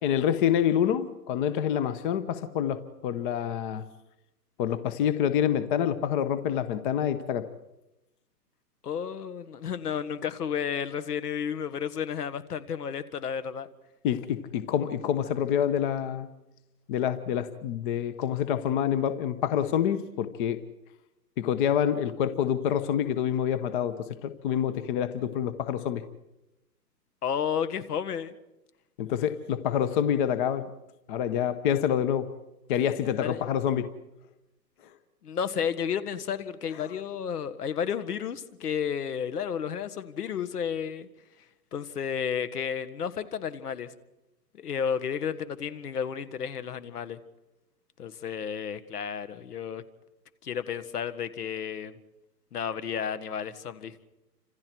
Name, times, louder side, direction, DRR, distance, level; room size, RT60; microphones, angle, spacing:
voice 1, 0.0-3.9 4.6-7.4 14.0-16.3 16.9-20.6 21.4-26.0 29.0-30.7 31.1-32.3 32.7-33.9, left 9 dB, 30° left, 12 dB, 1.2 m, -27 dB
voice 2, 8.8-13.7 27.2-28.4 33.2-33.4 35.2-41.1 41.7-43.9 44.5-47.2 48.0-49.8 50.4-52.0 52.5-54.0, left 7 dB, 65° left, 12 dB, 1.9 m, -32 dB
29.5 x 26.5 x 4.7 m, 0.96 s
hypercardioid pair, 135°, 50 cm